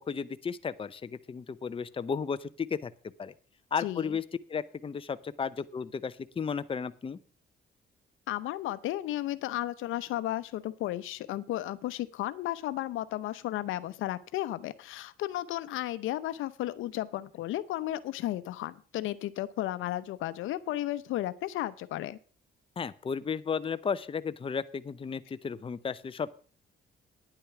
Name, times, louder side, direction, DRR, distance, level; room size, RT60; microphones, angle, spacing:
voice 1, 0.1-2.9 3.2-3.3 3.7-4.2 4.5-7.2 22.8-26.3, left 6 dB, 25° left, 13 dB, 0.6 m, -34 dB
voice 2, 3.8-4.2 8.3-22.2, left 14 dB, 85° left, 14 dB, 0.8 m, -34 dB
10.0 x 8.9 x 5.9 m, 0.39 s
cardioid pair, 90°, 20 cm